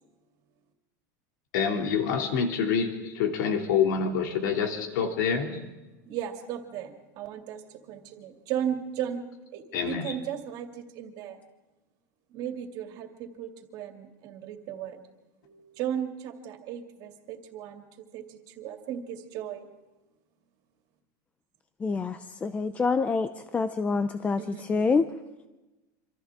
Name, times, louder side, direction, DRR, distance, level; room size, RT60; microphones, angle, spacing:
voice 1, 1.5-5.6 9.7-10.1, left 6 dB, 75° left, 3 dB, 2.8 m, -27 dB
voice 2, 6.1-7.6 7.9-9.2 9.5-10.7 11.0-11.4 12.3-15.0 15.5-17.8 18.1-18.2 18.6-19.6 23.0-23.1 24.4-24.7, right 9 dB, 45° right, 4 dB, 2.6 m, -35 dB
voice 3, 21.8-25.1, left 4 dB, 15° left, 10 dB, 0.6 m, -27 dB
27.0 x 26.0 x 3.7 m, 1.1 s
supercardioid pair, 155°, 10 cm